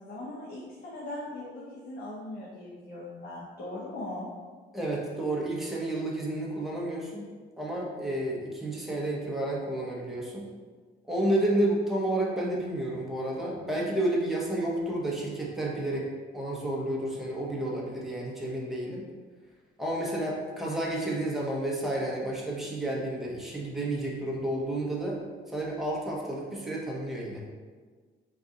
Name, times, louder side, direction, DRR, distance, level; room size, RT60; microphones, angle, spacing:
voice 1, 0.0-4.3, left 1 dB, 55° left, -6 dB, 0.9 m, -39 dB
voice 2, 4.7-7.3 7.6-10.5 11.1-16.1 16.3-19.0 19.8-25.2 25.5-27.4, right 1 dB, ahead, -4 dB, 1.0 m, -31 dB
4.0 x 2.6 x 3.7 m, 1.5 s
cardioid pair, 90°, 20 cm